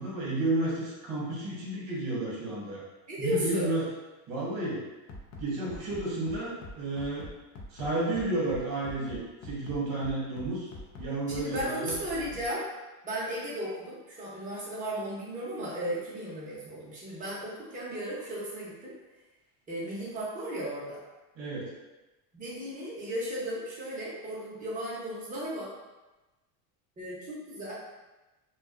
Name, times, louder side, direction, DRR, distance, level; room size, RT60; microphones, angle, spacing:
voice 1, 0.0-2.8 3.2-3.9 4.3-4.8 5.4-7.3 7.7-10.7 11.0-11.9 21.3-21.7, right 2 dB, 45° right, -5 dB, 1.1 m, -32 dB
voice 2, 3.1-3.7 11.3-12.7 13.0-18.9 19.7-21.0 22.3-25.7 27.0-27.7, equal, 15° right, -7 dB, 0.8 m, -35 dB
Bass drum, 5.1-12.5, left 1 dB, 35° left, 0.4 m, -43 dB
2.3 x 2.3 x 2.4 m, 1.1 s
supercardioid pair, 115°, 46 cm